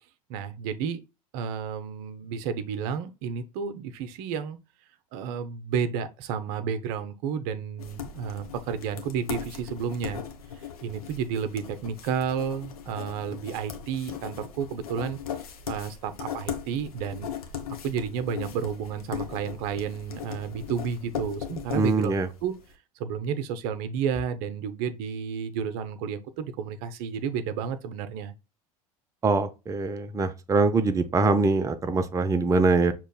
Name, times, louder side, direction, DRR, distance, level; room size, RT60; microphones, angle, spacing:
voice 1, 0.3-1.0 1.3-4.6 5.1-10.2 10.6-15.2 15.7-17.3 17.8-22.1 22.4-22.5 23.0-28.3, right 7 dB, 55° right, 0.6 m, -31 dB
sound 1, 7.8-22.6, left 8 dB, 75° left, 0.9 m, -39 dB
voice 2, 21.7-22.3 29.2-32.9, right 3 dB, 15° right, 0.5 m, -23 dB
6.4 x 3.0 x 2.2 m
figure-of-eight pair, 75°, 19 cm